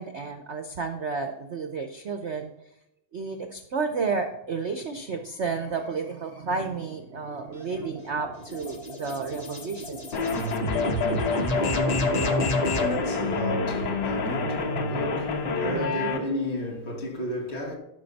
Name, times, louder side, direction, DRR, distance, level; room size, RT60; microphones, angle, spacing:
voice 1, 0.0-2.5 3.1-10.1 15.6-16.2, right 4 dB, 80° right, 0.6 m, -32 dB
sound 1, 7.5-13.0, left 2 dB, 35° left, 0.6 m, -30 dB
sound 2, 10.1-16.2, left 3 dB, 60° left, 1.6 m, -28 dB
voice 2, 11.3-17.8, equal, 75° left, 3.1 m, -32 dB
12.0 x 5.6 x 4.1 m
omnidirectional pair, 2.2 m